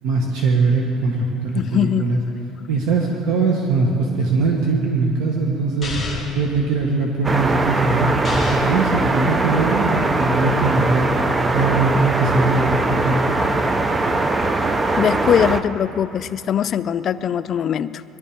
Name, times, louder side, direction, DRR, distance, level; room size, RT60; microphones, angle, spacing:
voice 1, 0.0-2.2 2.7-8.1 8.5-11.1 11.5-13.3, right 3 dB, 70° right, 1.5 m, -21 dB
voice 2, 1.5-2.1 15.0-18.0, left 9 dB, 35° left, 0.4 m, -21 dB
sound 1, 5.8-6.4 8.2-8.8, left 4 dB, 10° left, 2.1 m, -29 dB
sound 2, 7.2-15.6, right 2 dB, 15° right, 0.5 m, -21 dB
21.5 x 12.0 x 5.1 m
cardioid pair, 165°, 0 cm